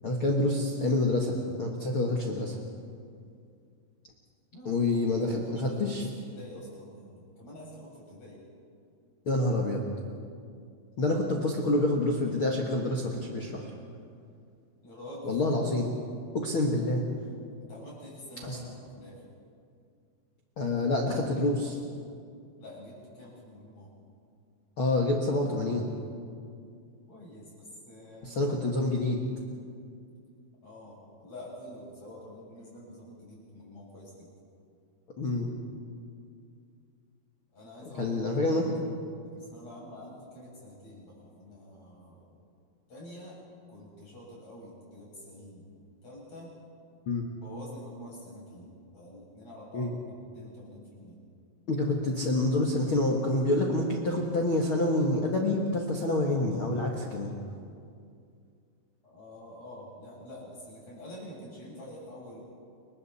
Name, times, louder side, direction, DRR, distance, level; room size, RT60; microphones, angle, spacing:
voice 1, 0.0-2.5 4.6-6.0 9.2-9.8 11.0-13.7 15.2-15.9 16.3-17.0 18.4-18.6 20.6-21.8 24.8-25.9 28.2-29.2 35.2-35.6 38.0-38.7 47.1-47.2 49.7-49.9 51.7-57.3, left 2 dB, 65° left, 0 dB, 1.2 m, -27 dB
voice 2, 4.5-8.4 14.8-15.6 17.6-19.2 22.6-23.9 27.1-28.5 30.6-34.3 37.5-38.3 39.2-42.3 42.9-43.4 43.7-45.7 46.0-46.5 47.4-48.7 48.9-49.9 50.3-51.2 59.0-62.4, left 1 dB, 35° left, -6 dB, 8.6 m, -47 dB
30.0 x 23.0 x 4.3 m, 2.3 s
omnidirectional pair, 5.2 m